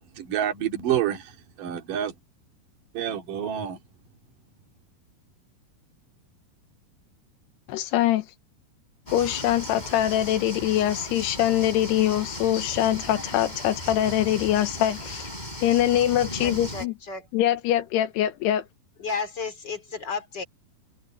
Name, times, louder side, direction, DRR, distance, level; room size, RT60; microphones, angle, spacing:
voice 1, 0.2-1.3 1.6-2.1 2.9-3.8, right 10 dB, 55° right, 4.0 m, -27 dB
voice 2, 7.7-8.2 9.1-15.3 15.6-16.9 17.3-18.7, left 12 dB, 85° left, 3.1 m, -23 dB
sound 1, 9.1-16.9, left 1 dB, 10° left, 6.9 m, -37 dB
voice 3, 16.4-17.3 19.0-20.4, left 5 dB, 30° left, 3.0 m, -33 dB
omnidirectional pair, 4.7 m